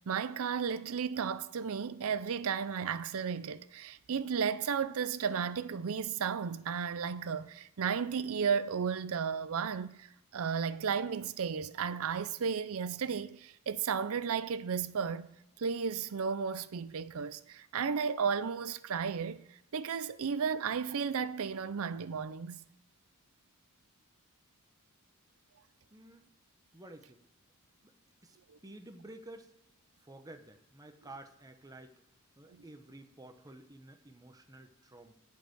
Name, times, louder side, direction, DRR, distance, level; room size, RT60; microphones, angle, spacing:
voice 1, 0.0-10.1 10.3-15.3 15.6-19.4 19.7-22.6, right 6 dB, 70° right, 0.5 m, -34 dB
voice 2, 25.9-26.3 26.7-27.2 27.8-27.9 28.2-28.4 28.6-29.5 30.0-32.0 32.4-35.1, right 1 dB, 15° right, 0.9 m, -51 dB
8.2 x 6.4 x 7.9 m
head